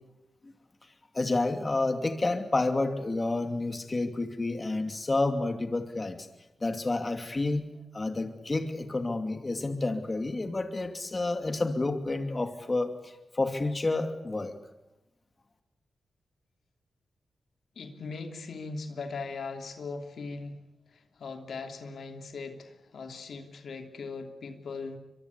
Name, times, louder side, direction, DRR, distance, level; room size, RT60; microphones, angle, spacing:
voice 1, 1.1-6.3 6.6-7.7 7.9-14.5, left 2 dB, 30° left, 6 dB, 2.8 m, -29 dB
voice 2, 17.8-20.6 20.9-25.0, left 4 dB, 75° left, 5 dB, 2.9 m, -39 dB
24.5 x 23.0 x 8.4 m, 0.94 s
cardioid pair, 60°, 0 cm